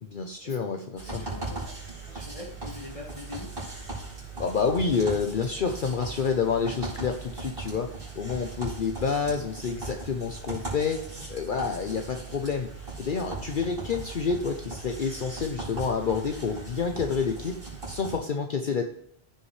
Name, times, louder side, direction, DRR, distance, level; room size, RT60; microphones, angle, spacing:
voice 1, 0.0-1.2 4.4-11.0 11.3-17.6 17.9-18.8, left 5 dB, 55° left, 4 dB, 0.9 m, -28 dB
voice 2, 1.0-3.5, left 3 dB, 30° left, -2 dB, 2.1 m, -43 dB
sound 1, 1.0-18.2, right 3 dB, 60° right, 4.4 m, -39 dB
15.0 x 5.8 x 3.2 m, 0.70 s
omnidirectional pair, 1.1 m